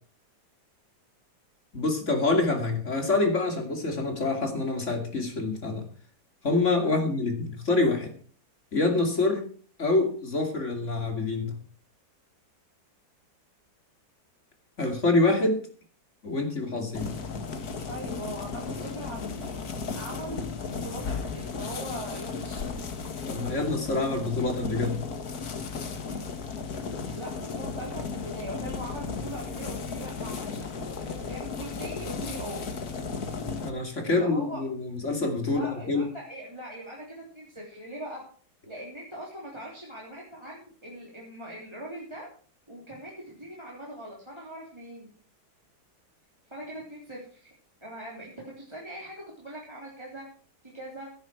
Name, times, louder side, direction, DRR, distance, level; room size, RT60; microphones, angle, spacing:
voice 1, 1.7-5.9 6.4-8.1 8.7-9.4 9.8-11.6 14.8-15.6 16.2-17.2 23.3-25.0 33.6-36.1, left 3 dB, 35° left, 4 dB, 3.0 m, -26 dB
sound 1, 16.9-33.7, left 5 dB, 55° left, 1.9 m, -35 dB
voice 2, 17.7-19.6 19.9-22.7 27.1-32.7 34.0-34.6 35.5-38.2 38.7-42.3 42.7-45.1 46.5-47.5 47.8-50.2 50.6-51.1, right 1 dB, 15° right, -3 dB, 3.5 m, -41 dB
16.5 x 10.0 x 4.6 m, 0.42 s
omnidirectional pair, 2.1 m